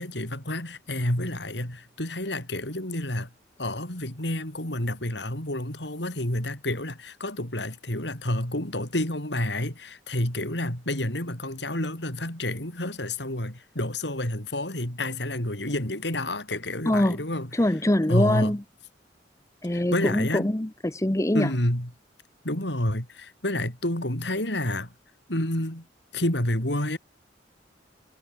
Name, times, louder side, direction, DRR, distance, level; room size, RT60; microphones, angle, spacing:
voice 1, 0.0-3.3 3.6-17.5 18.1-18.5 19.7-20.5 21.3-21.9 22.4-24.9 25.3-25.8 26.1-27.0, left 1 dB, 70° left, 6.1 m, -29 dB
voice 2, 16.9-17.2 17.5-18.6 19.6-21.5, left 1 dB, 15° left, 0.8 m, -24 dB
head